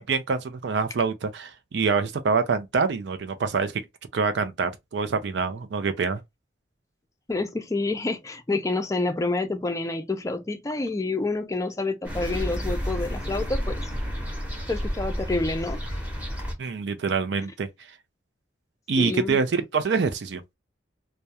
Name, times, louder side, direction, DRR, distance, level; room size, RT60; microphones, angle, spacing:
voice 1, 0.0-3.8 4.1-6.2 16.6-17.7 18.9-20.4, right 5 dB, 70° right, 0.4 m, -25 dB
voice 2, 7.3-13.8 14.7-16.0 19.0-19.4, left 2 dB, 15° left, 0.4 m, -28 dB
sound 1, 12.0-16.5, equal, 10° right, 0.8 m, -30 dB
2.3 x 2.1 x 2.7 m
head